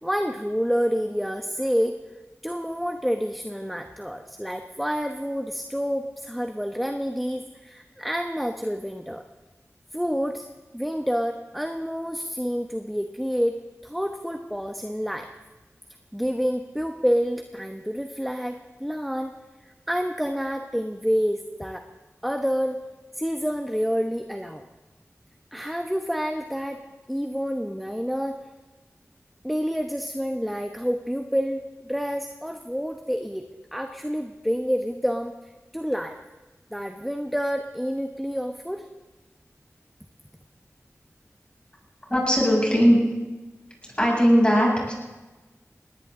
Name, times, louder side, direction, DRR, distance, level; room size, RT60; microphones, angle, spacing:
voice 1, 0.0-2.0 2.4-9.3 9.9-10.5 10.7-13.6 13.8-15.3 16.1-19.3 19.9-21.9 22.2-22.8 23.1-24.6 25.5-26.8 27.1-28.4 29.4-33.4 33.7-35.3 35.7-36.2 36.7-38.8, equal, ahead, 5 dB, 1.0 m, -28 dB
voice 2, 42.1-43.0 43.9-44.9, equal, 20° left, -3 dB, 7.4 m, -19 dB
20.0 x 18.5 x 3.8 m, 1.2 s
wide cardioid pair, 55°, 5 cm